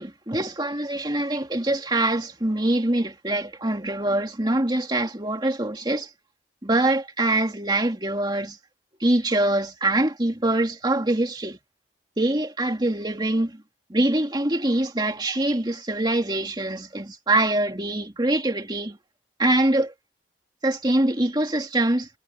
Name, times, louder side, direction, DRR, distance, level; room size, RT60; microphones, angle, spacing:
voice 1, 0.0-6.1 6.6-8.6 9.0-11.6 12.2-13.6 13.9-19.0 19.4-19.9 20.6-22.1, right 1 dB, 25° right, 2.4 m, -24 dB
head